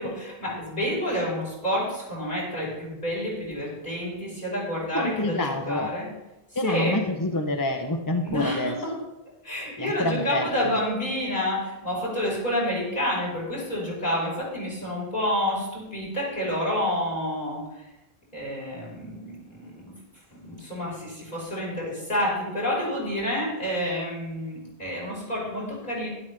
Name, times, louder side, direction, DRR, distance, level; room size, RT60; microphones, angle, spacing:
voice 1, 0.0-6.1 6.6-7.0 8.2-8.9 9.4-17.6 18.3-19.9 20.3-26.1, left 1 dB, 45° left, -5 dB, 5.3 m, -29 dB
voice 2, 4.9-5.9 6.6-8.7 9.8-10.8, left 1 dB, 25° left, 4 dB, 0.6 m, -27 dB
12.0 x 11.5 x 3.3 m, 0.98 s
omnidirectional pair, 1.1 m